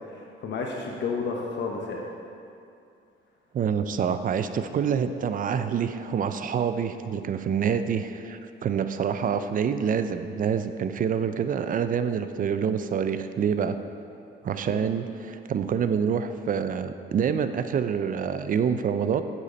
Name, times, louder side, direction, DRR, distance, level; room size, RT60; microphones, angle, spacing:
voice 1, 0.1-2.0 9.2-9.4 14.7-14.8, left 4 dB, 65° left, 0 dB, 0.8 m, -32 dB
voice 2, 3.5-13.8 14.4-19.2, right 7 dB, 45° right, 10 dB, 0.4 m, -26 dB
8.1 x 4.2 x 5.1 m, 2.6 s
cardioid pair, 90°, 20 cm